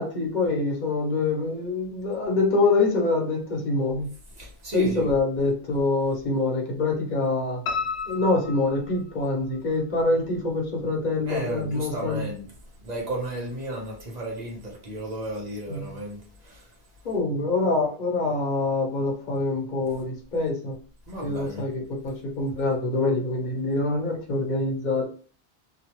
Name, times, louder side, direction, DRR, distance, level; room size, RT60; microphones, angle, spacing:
voice 1, 0.0-4.1 4.7-7.6 8.1-12.3 15.7-15.9 17.0-20.7 21.2-25.1, left 3 dB, 50° left, 0.9 m, -25 dB
voice 2, 4.4-5.1 11.3-12.5 12.8-16.6 21.1-21.7, right 1 dB, 40° right, 1.0 m, -33 dB
Piano, 7.7-9.6 10.0-10.9 11.2-11.3 11.7-11.8 12.1-12.2, left 5 dB, 80° left, 0.9 m, -33 dB
2.9 x 2.2 x 2.9 m
omnidirectional pair, 1.1 m